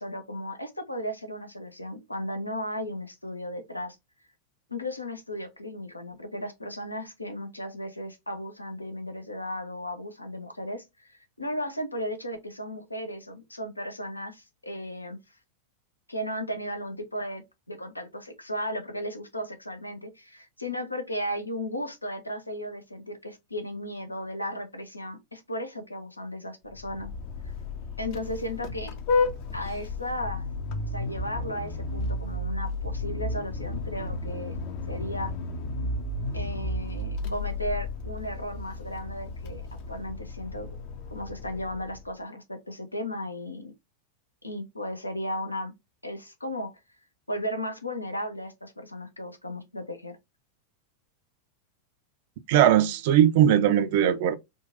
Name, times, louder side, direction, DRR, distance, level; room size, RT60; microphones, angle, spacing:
voice 1, 0.0-4.0 4.7-15.2 16.1-17.4 17.7-27.1 27.4-27.5 28.0-28.9 29.5-30.5 30.9-34.5 34.9-35.3 36.3-40.7 41.1-43.7 44.4-45.7 46.0-46.8 47.3-50.2, equal, 85° left, 0.6 m, -35 dB
Vehicle horn car horn honking, 26.7-42.1, left 3 dB, 45° left, 0.6 m, -33 dB
voice 2, 52.5-54.4, right 10 dB, 50° right, 0.4 m, -20 dB
3.8 x 2.4 x 2.5 m
figure-of-eight pair, 90°, 0 cm